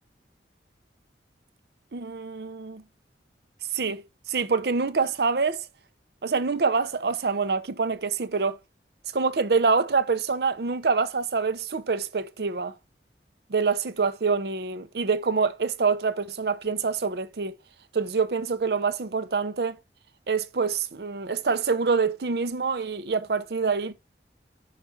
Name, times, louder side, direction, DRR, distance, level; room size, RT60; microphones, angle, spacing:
voice 1, 1.9-2.8 3.7-4.0 4.3-5.6 6.2-8.6 9.1-12.7 13.5-17.6 17.9-19.8 20.3-23.9, right 5 dB, 60° right, 0.6 m, -26 dB
5.7 x 5.0 x 4.4 m
head